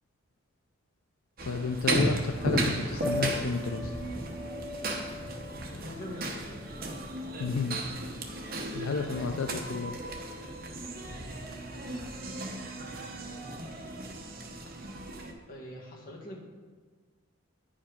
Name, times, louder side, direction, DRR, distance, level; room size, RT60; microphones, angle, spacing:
sound 1, 1.4-15.3, right 2 dB, 45° right, 0.9 m, -35 dB
voice 1, 1.5-3.9 7.4-7.8 8.7-10.0, left 4 dB, 80° left, 6 dB, 0.4 m, -31 dB
Piano, 3.0-8.9, left 1 dB, ahead, 0.6 m, -40 dB
voice 2, 5.7-6.4 9.0-9.4 11.0-11.4 15.5-16.4, left 1 dB, 40° left, -3 dB, 1.8 m, -43 dB
9.9 x 5.1 x 5.2 m, 1.5 s
head